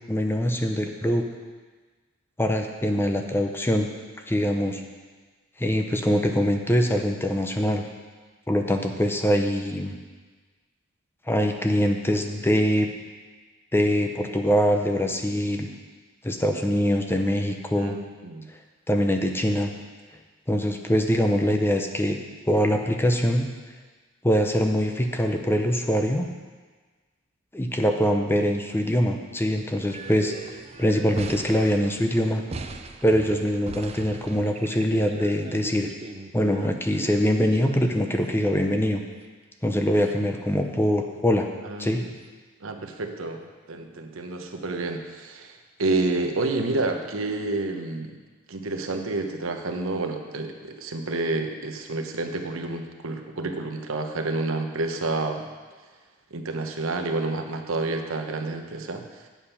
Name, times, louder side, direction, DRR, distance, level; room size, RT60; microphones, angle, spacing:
voice 1, 0.1-1.3 2.4-3.9 4.3-4.8 5.6-7.8 8.5-10.0 11.3-12.9 13.7-15.7 16.2-18.0 18.9-19.7 20.5-22.2 22.5-23.5 24.2-26.3 27.5-32.4 33.0-35.9 36.3-39.0 39.6-41.5 41.8-42.0, equal, 10° left, 4 dB, 0.7 m, -23 dB
voice 2, 17.8-18.5 41.6-42.1 42.6-43.4 43.7-48.2 48.5-55.5 56.3-59.0, right 2 dB, 85° right, 5 dB, 0.9 m, -29 dB
sound 1, 29.8-38.3 39.2-39.3 39.6-39.7 40.0-40.1 40.6-40.7 42.2-42.3, right 3 dB, 30° right, 0.5 m, -40 dB
8.8 x 7.3 x 5.7 m, 1.4 s
head